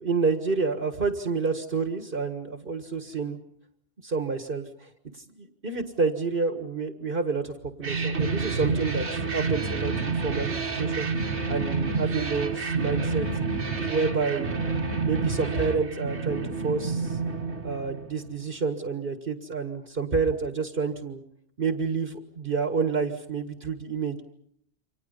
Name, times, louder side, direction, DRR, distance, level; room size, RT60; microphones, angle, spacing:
voice 1, 0.0-3.4 4.0-4.9 5.4-7.5 7.8-9.1 9.3-13.3 13.9-14.5 15.0-17.2 17.6-21.2 21.6-24.2, right 4 dB, 55° right, 6 dB, 1.9 m, -29 dB
sound 1, 7.8-18.4, right 4 dB, 80° right, 2.2 m, -29 dB
29.0 x 25.5 x 5.5 m, 0.69 s
omnidirectional pair, 1.1 m